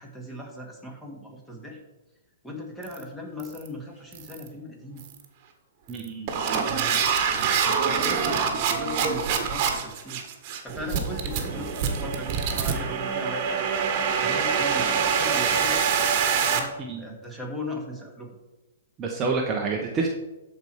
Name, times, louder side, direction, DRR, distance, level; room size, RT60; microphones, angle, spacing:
voice 1, 0.0-1.8 2.4-5.0 6.6-10.2 10.6-13.6 14.2-15.8 16.5-18.4, left 1 dB, 5° left, 0 dB, 2.4 m, -38 dB
sound 1, 2.8-3.0 3.4-3.7 4.1-4.5 5.0-5.3 5.9-16.6, right 6 dB, 40° right, 1.6 m, -25 dB
voice 2, 5.9-6.3 16.9-17.0 19.0-20.1, right 4 dB, 25° right, 0 dB, 1.1 m, -27 dB
13.5 x 4.8 x 4.8 m, 1.0 s
hypercardioid pair, 125°, 0 cm